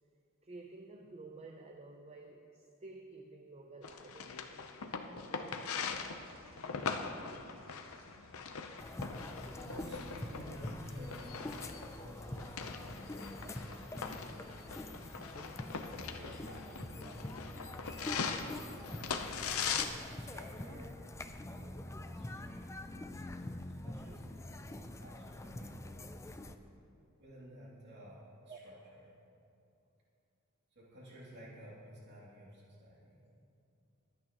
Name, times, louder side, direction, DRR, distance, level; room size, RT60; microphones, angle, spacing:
voice 1, 0.4-4.6 5.3-5.8 12.6-12.7 13.4-13.5 17.0-17.5 25.8-25.9 28.4-28.6 28.8-28.9, right 3 dB, 30° right, 3 dB, 0.6 m, -52 dB
sound 1, 3.8-19.8, left 6 dB, 85° left, 0.7 m, -41 dB
sound 2, 5.9-16.2, right 1 dB, 70° right, 1.7 m, -63 dB
sound 3, 8.8-26.6, left 1 dB, 15° left, 0.4 m, -45 dB
voice 2, 9.5-11.7 12.0-14.8 15.9-26.0 27.2-28.7 29.0-29.1 30.7-33.2, equal, 55° right, -6 dB, 2.6 m, -54 dB
24.0 x 8.9 x 3.0 m, 2.5 s
head